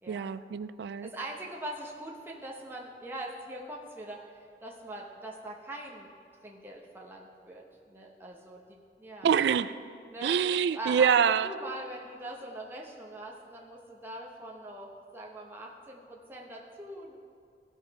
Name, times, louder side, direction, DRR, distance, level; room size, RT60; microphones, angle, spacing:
voice 1, 0.1-1.1 9.2-9.7 10.2-11.5, right 7 dB, 70° right, 15 dB, 0.3 m, -25 dB
voice 2, 1.0-6.1 6.4-9.3 10.1-10.4 10.7-17.2, right 1 dB, 10° right, -2 dB, 0.8 m, -42 dB
16.0 x 5.4 x 4.7 m, 2.3 s
head